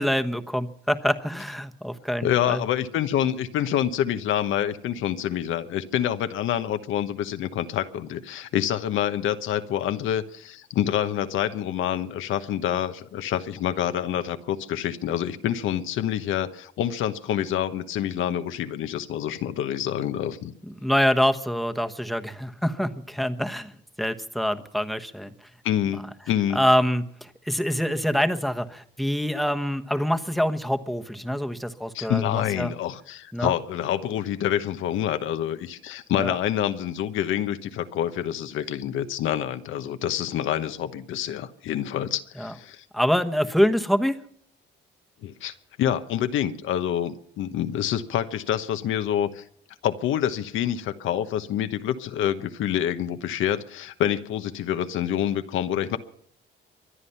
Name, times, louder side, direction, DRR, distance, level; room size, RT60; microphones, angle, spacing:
voice 1, 0.0-2.6 20.8-23.7 24.0-25.3 26.5-32.7 33.3-33.5 36.2-36.3 42.4-42.5 42.9-44.2, equal, ahead, 9 dB, 1.2 m, -25 dB
voice 2, 2.2-20.5 25.6-26.0 26.3-26.6 31.9-42.8 45.2-49.4 49.8-56.0, left 10 dB, 85° left, 9 dB, 1.1 m, -27 dB
24.5 x 9.9 x 5.7 m, 0.63 s
cardioid pair, 90°, 20 cm